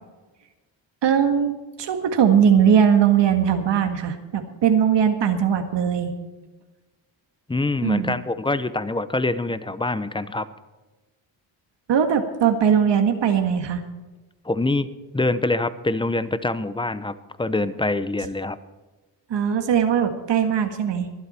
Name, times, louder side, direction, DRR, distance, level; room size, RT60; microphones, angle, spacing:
voice 1, 1.0-6.1 7.8-8.2 11.9-13.8 19.3-21.1, right 8 dB, 65° right, 6 dB, 1.8 m, -20 dB
voice 2, 7.5-10.5 14.4-14.9 15.1-18.6, left 2 dB, 10° left, 14 dB, 0.8 m, -25 dB
24.0 x 8.1 x 4.4 m, 1.2 s
cardioid pair, 105°, 45 cm